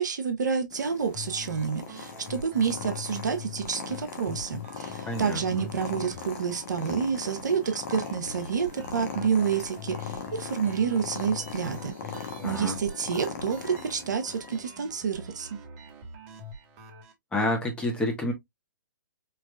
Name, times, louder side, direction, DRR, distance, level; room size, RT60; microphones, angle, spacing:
voice 1, 0.0-15.6, right 6 dB, 60° right, 1.0 m, -29 dB
Purr, 0.7-14.6, left 6 dB, 40° left, 1.1 m, -40 dB
sound 1, 1.1-17.1, left 4 dB, 30° right, 1.4 m, -44 dB
voice 2, 5.0-5.7 12.4-12.8 17.3-18.3, left 1 dB, 10° left, 1.3 m, -29 dB
4.7 x 3.1 x 2.3 m
figure-of-eight pair, 125°, 11 cm